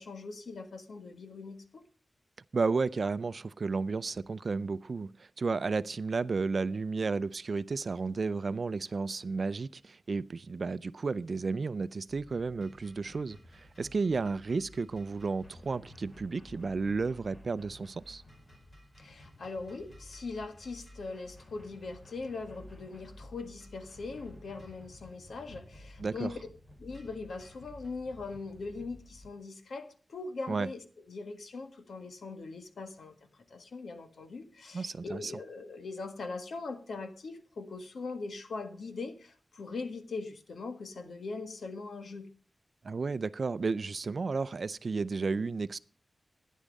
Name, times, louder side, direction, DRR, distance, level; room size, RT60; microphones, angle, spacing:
voice 1, 0.0-1.8 19.0-26.4 26.8-42.3, left 3 dB, 90° left, 1.6 m, -41 dB
voice 2, 2.5-18.2 26.0-26.3 30.5-30.7 34.7-35.3 42.8-45.8, right 4 dB, 55° right, 0.5 m, -32 dB
sound 1, 12.1-29.3, left 1 dB, 30° left, 4.8 m, -53 dB
13.5 x 10.0 x 5.3 m
wide cardioid pair, 130°, 0 cm